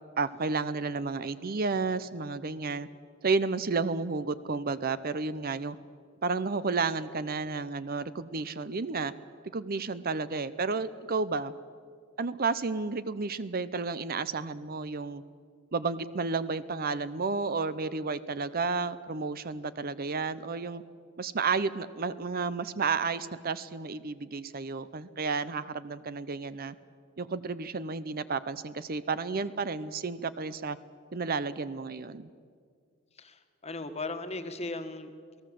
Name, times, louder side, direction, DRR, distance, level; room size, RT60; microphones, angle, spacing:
voice 1, 0.2-2.9 3.2-5.8 6.2-9.1 9.5-11.5 12.2-15.2 15.7-20.8 21.2-26.8 27.2-30.8 31.1-32.3, right 4 dB, 45° right, 14 dB, 0.7 m, -31 dB
voice 2, 33.1-35.4, left 2 dB, 30° left, 7 dB, 1.6 m, -38 dB
28.0 x 18.0 x 7.7 m, 2.1 s
head